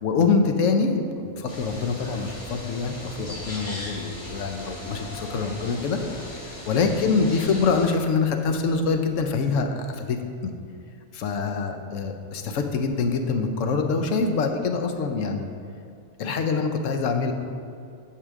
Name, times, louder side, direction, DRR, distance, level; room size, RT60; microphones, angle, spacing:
voice 1, 0.0-10.2 10.4-10.5 11.1-15.5 16.2-17.3, left 4 dB, 70° left, 6 dB, 1.0 m, -25 dB
sound 1, 1.5-7.9, left 1 dB, 25° left, 1.5 m, -38 dB
8.6 x 6.8 x 3.6 m, 2.5 s
omnidirectional pair, 1.4 m